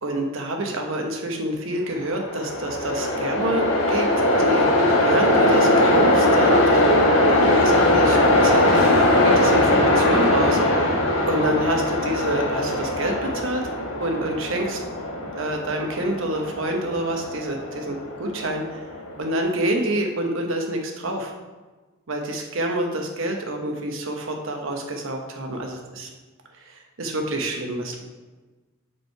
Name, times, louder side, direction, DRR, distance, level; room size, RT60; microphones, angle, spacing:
voice 1, 0.0-4.7 5.0-6.8 7.3-8.2 8.4-10.9 11.3-13.6 14.0-14.8 15.3-18.6 19.2-21.3 22.1-26.1 26.7-28.0, right 1 dB, 65° right, 2 dB, 1.0 m, -27 dB
Train, 2.0-19.2, left 1 dB, 65° left, 1.6 m, -20 dB
6.0 x 4.6 x 4.6 m, 1.3 s
head